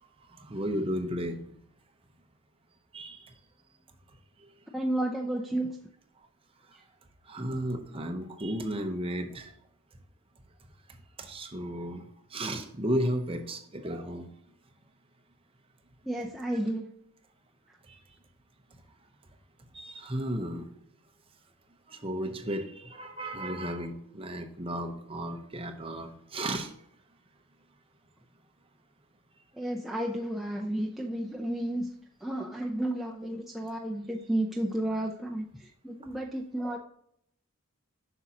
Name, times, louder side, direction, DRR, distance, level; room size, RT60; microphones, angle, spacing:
voice 1, 0.4-1.4 2.9-3.2 7.3-9.5 11.2-12.0 12.3-14.3 19.7-20.7 21.9-26.7, equal, 25° right, 5 dB, 0.7 m, -33 dB
voice 2, 4.7-5.8 6.7-6.8 16.0-16.9 29.5-31.9 32.2-36.8, right 1 dB, ahead, -1 dB, 0.4 m, -32 dB
8.0 x 6.0 x 2.8 m, 0.70 s
head